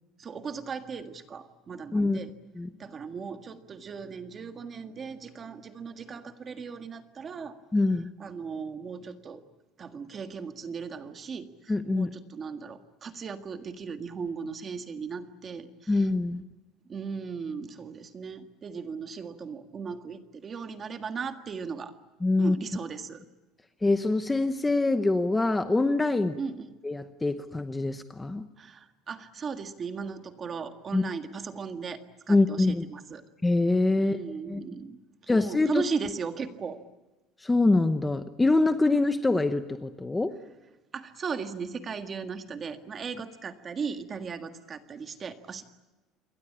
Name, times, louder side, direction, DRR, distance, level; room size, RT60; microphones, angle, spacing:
voice 1, 0.2-2.3 2.8-7.6 8.2-9.4 9.8-16.1 16.9-21.9 22.4-23.2 26.4-26.8 28.6-33.2 34.0-35.0 35.3-36.8 40.9-45.6, right 5 dB, 25° right, 8 dB, 1.7 m, -37 dB
voice 2, 7.7-8.1 11.7-12.1 15.9-16.4 22.2-22.6 23.8-26.3 26.8-28.4 30.9-31.0 32.3-32.8 33.4-34.2 34.5-34.6 35.3-35.7 37.4-40.3, left 2 dB, 10° left, 9 dB, 0.9 m, -24 dB
28.0 x 22.5 x 8.7 m, 1.1 s
cardioid pair, 170°, 0 cm